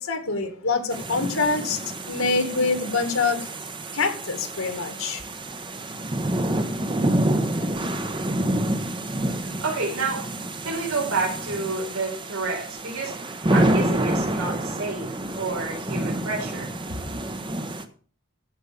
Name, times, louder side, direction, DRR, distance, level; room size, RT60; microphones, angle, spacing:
voice 1, 0.0-1.8 2.1-3.5 3.9-5.2, left 4 dB, 70° left, 2.2 m, -25 dB
sound 1, 0.9-17.8, right 1 dB, 25° right, 1.0 m, -28 dB
voice 2, 9.3-10.3 10.6-16.7, right 3 dB, 85° right, 4.6 m, -29 dB
15.0 x 5.6 x 7.0 m
head